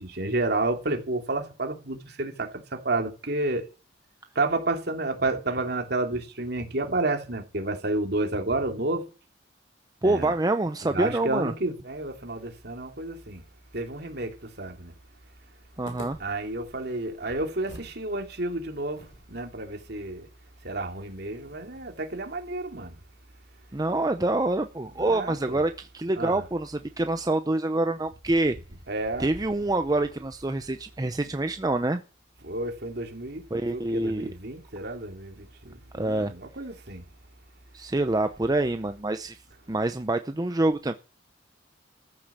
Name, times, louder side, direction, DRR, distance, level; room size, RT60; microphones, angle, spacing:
voice 1, 0.0-3.7 4.3-9.1 10.0-10.3 10.9-13.4 13.7-14.9 16.2-19.0 19.3-20.3 20.6-23.0 25.0-25.6 26.1-26.4 28.9-29.3 32.4-33.4 33.7-37.0, right 2 dB, 55° right, 2.9 m, -30 dB
voice 2, 10.0-11.5 15.8-16.2 23.7-28.6 29.2-32.0 33.5-34.3 35.9-36.3 37.7-39.4 39.7-40.9, right 2 dB, 20° right, 0.6 m, -26 dB
sound 1, 15.8-18.0 18.3-18.4 18.9-22.1, equal, 90° left, 5.2 m, -50 dB
14.0 x 8.7 x 7.3 m
head